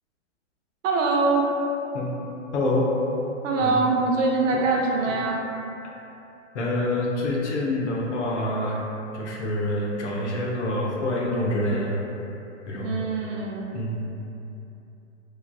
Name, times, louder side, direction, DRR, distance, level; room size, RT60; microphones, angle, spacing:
voice 1, 0.8-1.5 3.4-5.4 12.8-13.7, right 3 dB, 70° right, -1 dB, 0.6 m, -23 dB
voice 2, 2.5-2.9 3.6-3.7 4.5-4.6 5.1-5.2 6.5-8.8 9.1-12.0 12.7-12.9 13.7-14.1, left 1 dB, 60° left, -3 dB, 0.7 m, -26 dB
3.1 x 2.4 x 2.2 m, 2.8 s
hypercardioid pair, 150°, 39 cm